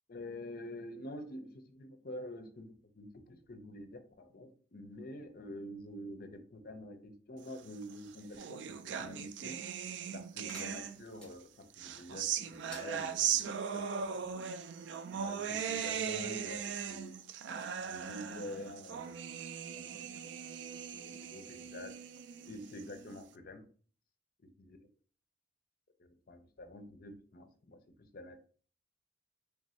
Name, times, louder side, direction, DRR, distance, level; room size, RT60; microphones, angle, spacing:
voice 1, 0.1-9.6 10.1-13.9 14.1-14.4 15.1-17.1 17.9-19.2 19.7-19.9 20.2-20.3 21.0-22.0 22.4-23.7 24.6-24.8 26.0-28.4, left 1 dB, 50° left, 8 dB, 0.6 m, -47 dB
sound 1, 7.8-11.3 11.7-23.2, right 8 dB, 70° right, 0.3 m, -39 dB
sound 2, 10.5-11.3 12.5-13.5, left 1 dB, 5° left, 1.2 m, -53 dB
3.4 x 2.5 x 4.2 m, 0.43 s
head